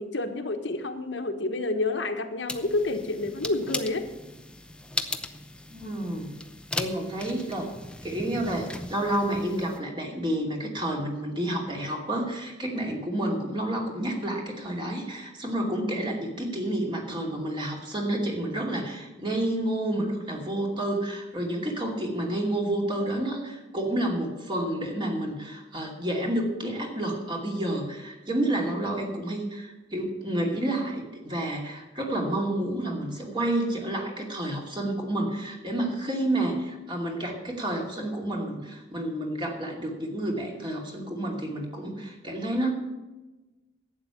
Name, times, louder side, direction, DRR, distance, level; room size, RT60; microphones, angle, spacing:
voice 1, 0.0-4.0, left 2 dB, 65° left, 6 dB, 1.3 m, -29 dB
sound 1, 2.5-9.8, left 2 dB, 5° left, 0.7 m, -37 dB
voice 2, 5.7-6.3 6.7-7.7 8.0-42.7, right 1 dB, 25° right, 0 dB, 2.5 m, -30 dB
12.0 x 8.7 x 7.0 m, 1.1 s
head